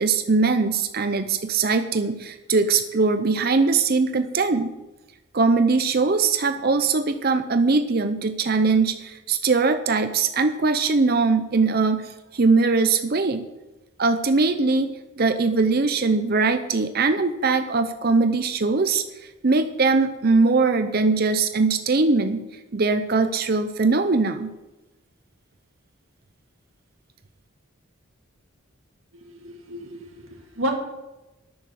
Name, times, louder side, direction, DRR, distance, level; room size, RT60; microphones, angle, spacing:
voice 1, 0.0-4.7 5.3-13.5 14.0-19.0 19.4-22.4 22.7-24.5, right 4 dB, 45° right, 8 dB, 0.6 m, -21 dB
voice 2, 29.4-30.7, equal, 75° right, 0 dB, 2.1 m, -31 dB
11.0 x 6.7 x 7.8 m, 1.0 s
head